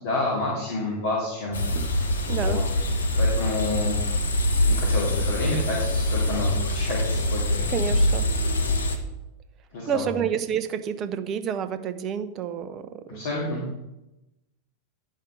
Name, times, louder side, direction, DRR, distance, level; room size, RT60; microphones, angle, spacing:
voice 1, 0.0-1.6 2.3-2.6 3.2-4.2 4.6-7.6 9.7-10.2 13.1-13.6, left 2 dB, 55° left, -6 dB, 2.7 m, -29 dB
sound 1, 1.5-9.0, left 1 dB, 70° left, 1.1 m, -24 dB
voice 2, 2.3-2.6 7.7-8.3 9.9-13.3, right 8 dB, 35° right, 10 dB, 0.7 m, -29 dB
11.0 x 5.4 x 5.3 m, 0.94 s
figure-of-eight pair, 90°, 0 cm